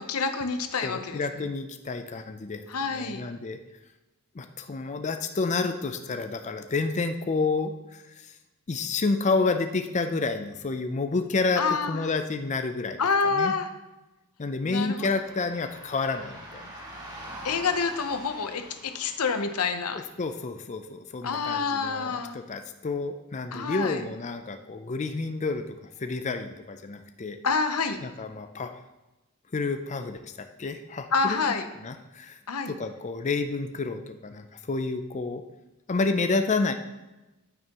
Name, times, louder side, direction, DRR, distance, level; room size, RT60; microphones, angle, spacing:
voice 1, 0.0-1.5 2.7-3.2 11.6-12.1 13.0-13.7 14.7-15.1 17.4-20.0 21.2-22.4 23.5-24.0 27.4-28.0 31.1-31.7 32.5-32.7, left 5 dB, 90° left, 8 dB, 0.8 m, -27 dB
voice 2, 0.8-2.6 2.9-3.6 4.4-8.3 8.7-13.0 13.3-13.5 14.4-16.9 19.9-25.7 26.0-27.4 28.0-28.8 29.5-30.3 30.6-31.4 31.8-32.4 32.7-35.4 35.9-36.7, left 3 dB, 35° left, 7 dB, 0.5 m, -29 dB
sound 1, 15.0-20.2, right 1 dB, 20° right, 1.5 m, -44 dB
9.4 x 8.8 x 3.0 m, 1.0 s
head